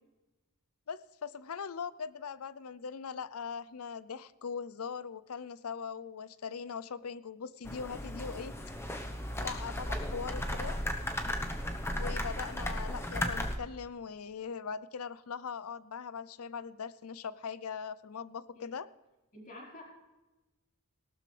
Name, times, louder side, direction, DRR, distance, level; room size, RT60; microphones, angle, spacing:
voice 1, 0.9-8.5 9.4-10.8 11.9-18.9, left 6 dB, 80° left, 17 dB, 0.6 m, -40 dB
sound 1, 7.7-13.6, left 1 dB, 10° left, 1.0 m, -35 dB
voice 2, 19.3-19.8, left 2 dB, 40° left, -3 dB, 4.5 m, -48 dB
18.0 x 12.5 x 3.3 m, 1.1 s
head